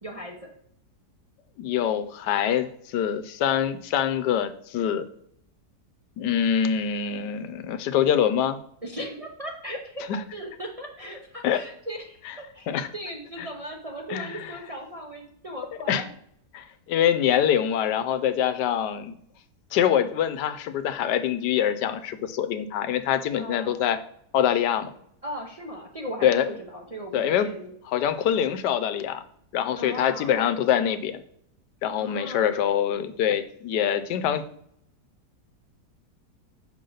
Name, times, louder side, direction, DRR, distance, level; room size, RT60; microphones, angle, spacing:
voice 1, 0.0-0.4 8.8-10.0 10.3-12.2 12.5-16.1 23.4-23.8 25.2-27.7 29.8-30.5 31.9-32.5, equal, 35° right, 0 dB, 0.6 m, -37 dB
voice 2, 1.6-5.0 6.2-8.6 10.1-10.2 11.4-11.6 12.2-12.4 12.7-12.9 13.4-13.5 14.1-14.6 15.9-16.0 16.5-19.2 19.7-24.0 24.3-24.9 26.2-26.6 27.1-27.5 27.9-29.2 29.5-31.2 31.8-34.4, left 9 dB, 90° left, 10 dB, 1.2 m, -24 dB
6.5 x 5.6 x 3.9 m, 0.69 s
omnidirectional pair, 1.7 m